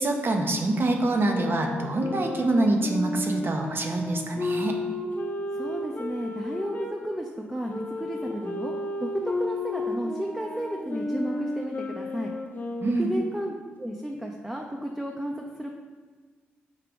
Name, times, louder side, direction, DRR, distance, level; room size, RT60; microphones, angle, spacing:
voice 1, 0.0-4.7 12.8-13.1, right 2 dB, 40° right, 3 dB, 0.7 m, -25 dB
sound 1, 1.1-6.9 7.7-13.3, left 2 dB, 35° left, 0.7 m, -33 dB
voice 2, 5.5-8.7 9.0-12.3 13.0-15.7, equal, 10° right, 0 dB, 0.5 m, -33 dB
4.8 x 2.8 x 3.5 m, 1.5 s
hypercardioid pair, 40°, 5 cm